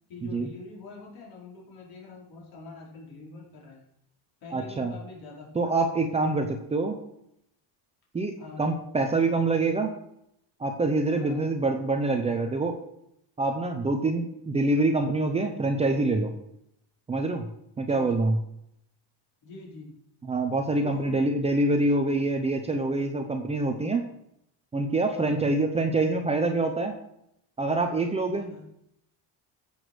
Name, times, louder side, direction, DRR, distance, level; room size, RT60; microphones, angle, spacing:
voice 1, 0.1-3.8 4.4-5.7 8.4-8.7 11.1-11.5 17.8-18.1 19.4-19.9 20.8-21.6 25.1-25.5 28.2-28.6, left 3 dB, 50° left, -3 dB, 5.0 m, -44 dB
voice 2, 4.5-4.9 5.5-7.0 8.1-8.3 8.6-9.9 10.6-12.8 13.4-16.3 17.1-17.5 17.8-18.3 20.3-24.0 24.7-26.9 27.6-28.7, right 2 dB, 15° right, 4 dB, 0.7 m, -25 dB
16.0 x 7.2 x 6.3 m, 0.79 s
cardioid pair, 175°, 46 cm